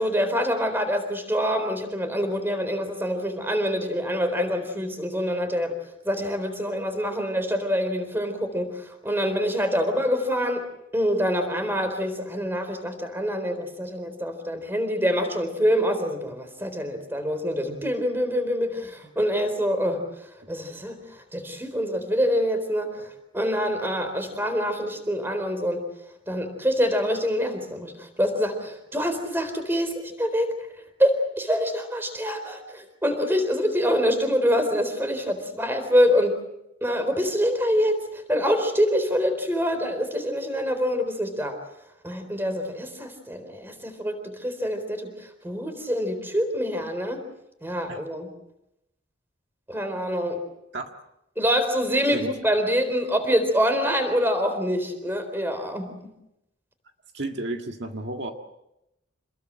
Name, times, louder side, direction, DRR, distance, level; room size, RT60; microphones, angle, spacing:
voice 1, 0.0-5.7 6.0-10.6 10.9-20.1 20.5-25.9 26.3-30.5 31.0-36.4 36.8-41.6 42.0-47.2 47.6-48.3 49.7-50.4 51.4-56.0, equal, 10° right, 8 dB, 4.0 m, -25 dB
voice 2, 57.1-58.3, right 2 dB, 60° right, 3 dB, 1.8 m, -32 dB
28.0 x 21.0 x 7.7 m, 0.87 s
head